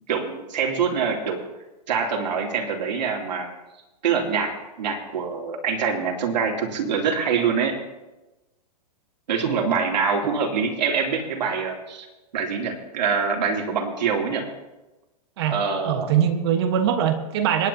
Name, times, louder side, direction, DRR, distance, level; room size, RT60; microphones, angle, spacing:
voice 1, 0.1-1.4 1.9-3.5 4.0-7.7 9.3-12.1 12.3-14.5 15.5-16.1, right 6 dB, 85° right, 0 dB, 3.0 m, -25 dB
voice 2, 15.8-17.7, right 9 dB, 40° right, 6 dB, 1.4 m, -22 dB
26.5 x 9.7 x 2.8 m, 1.1 s
supercardioid pair, 180°, 21 cm